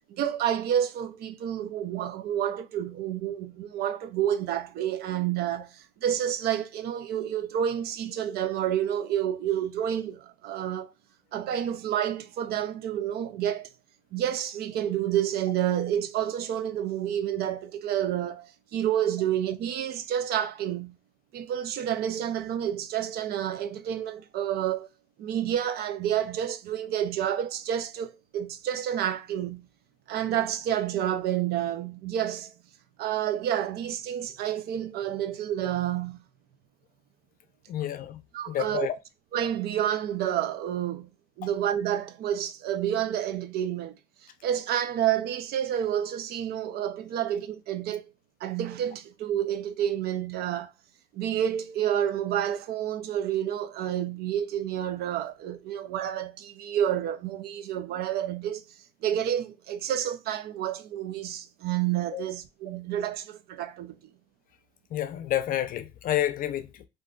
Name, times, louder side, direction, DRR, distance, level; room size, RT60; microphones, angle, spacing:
voice 1, 0.1-10.9 11.3-13.7 14.1-21.0 21.3-24.9 25.2-29.7 30.1-32.5 33.0-36.2 38.3-38.9 39.3-41.1 41.4-44.0 44.4-48.1 48.4-50.7 51.1-58.6 59.0-64.0, right 10 dB, 70° right, 0.4 m, -29 dB
voice 2, 37.7-38.2 38.5-39.0 62.1-62.2 64.9-66.9, left 12 dB, 55° left, 0.5 m, -29 dB
2.5 x 2.3 x 3.7 m
cardioid pair, 110°, 17 cm